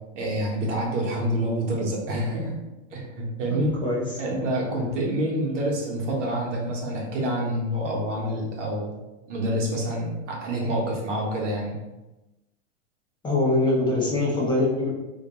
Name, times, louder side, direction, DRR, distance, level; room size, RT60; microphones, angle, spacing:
voice 1, 0.1-2.6 2.9-3.8 4.2-8.9 9.3-11.8, right 1 dB, 85° right, -2 dB, 1.0 m, -27 dB
voice 2, 3.5-4.0 4.7-4.9 13.2-14.9, left 2 dB, 15° left, -5 dB, 0.4 m, -23 dB
2.3 x 2.2 x 2.9 m, 1.0 s
supercardioid pair, 130°, 36 cm